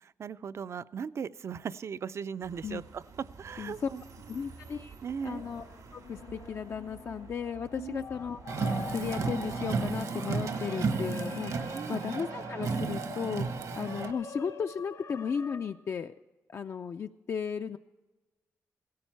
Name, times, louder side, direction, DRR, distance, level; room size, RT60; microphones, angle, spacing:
voice 1, 0.0-4.0 5.0-5.4 7.8-8.0 11.7-12.0, right 6 dB, 50° right, 16 dB, 0.4 m, -38 dB
sound 1, 2.4-9.9, right 6 dB, 90° right, 2.9 m, -51 dB
voice 2, 3.6-3.9 4.3-4.9 5.2-5.6 5.9-8.4 8.9-13.5 13.8-16.1 16.5-17.8, left 6 dB, 50° left, 6 dB, 0.4 m, -35 dB
sound 2, 5.3-15.6, left 5 dB, 75° left, 1.6 m, -45 dB
Car, 8.5-14.1, right 4 dB, 70° right, 1.1 m, -33 dB
16.5 x 13.5 x 4.6 m, 1.2 s
wide cardioid pair, 120°, 6 cm